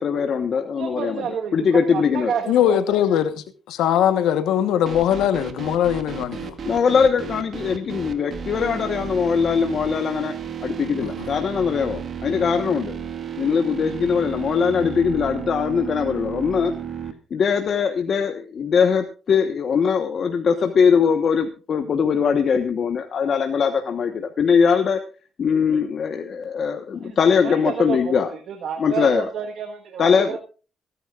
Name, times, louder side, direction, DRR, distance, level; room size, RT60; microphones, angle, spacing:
voice 1, 0.0-1.2 1.5-2.3 6.6-10.3 10.6-13.0 13.4-16.7 17.3-25.0 25.4-28.3 28.8-29.3 30.0-30.4, left 6 dB, 55° left, 1.2 m, -21 dB
voice 2, 0.8-2.8 27.0-30.4, right 7 dB, 70° right, 1.4 m, -30 dB
voice 3, 2.5-6.5 11.0-11.1, left 10 dB, 90° left, 1.2 m, -21 dB
sound 1, 4.9-17.1, right 8 dB, 50° right, 1.7 m, -33 dB
25.5 x 10.0 x 2.5 m
cardioid pair, 90°, 0 cm